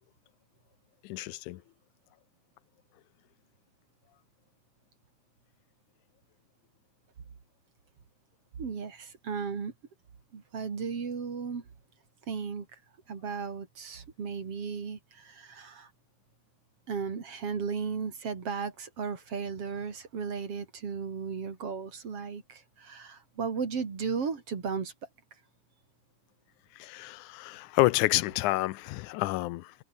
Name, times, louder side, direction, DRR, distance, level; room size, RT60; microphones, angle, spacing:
voice 1, 1.0-1.6 26.8-29.7, left 18 dB, 90° left, 2.1 m, -29 dB
voice 2, 8.6-9.7 10.3-11.7 12.3-12.8 13.1-15.9 16.9-24.9, right 5 dB, 50° right, 3.8 m, -35 dB
omnidirectional pair, 3.5 m